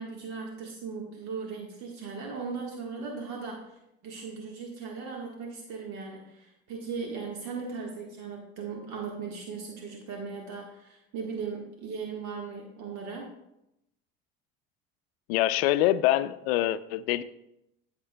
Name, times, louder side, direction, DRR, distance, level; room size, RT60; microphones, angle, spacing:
voice 1, 0.0-3.8 4.0-13.3, right 5 dB, 65° right, 0 dB, 1.4 m, -38 dB
voice 2, 15.3-17.2, left 14 dB, 85° left, 15 dB, 0.5 m, -25 dB
12.0 x 6.6 x 2.2 m, 0.84 s
supercardioid pair, 90°, 30 cm